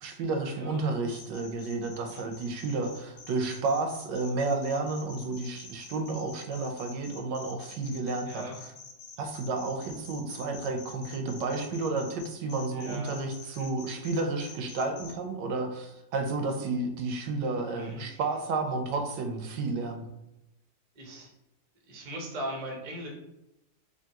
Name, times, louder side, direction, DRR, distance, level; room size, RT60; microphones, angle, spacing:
voice 1, 0.0-8.7 9.2-20.1, right 3 dB, 85° right, 4 dB, 1.2 m, -31 dB
voice 2, 0.5-0.8 2.1-2.3 8.2-8.6 12.7-13.6 17.7-18.2 21.0-21.3 21.8-23.1, right 1 dB, 65° right, 0 dB, 0.4 m, -40 dB
sound 1, 1.1-15.1, left 5 dB, 80° left, 0.5 m, -47 dB
3.4 x 2.6 x 2.8 m, 0.91 s
omnidirectional pair, 1.9 m